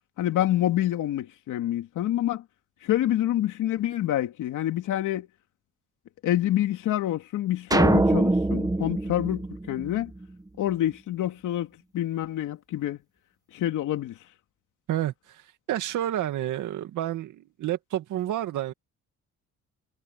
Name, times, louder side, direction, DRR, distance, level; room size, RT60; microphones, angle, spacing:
voice 1, 0.2-2.4 2.8-5.3 6.2-10.1 10.6-13.0 13.5-14.2, left 13 dB, 80° left, 3.0 m, -27 dB
sound 1, 7.7-10.2, right 2 dB, 10° right, 1.4 m, -23 dB
voice 2, 14.9-15.4 15.7-18.7, right 12 dB, 80° right, 2.2 m, -29 dB
cardioid pair, 90°, 30 cm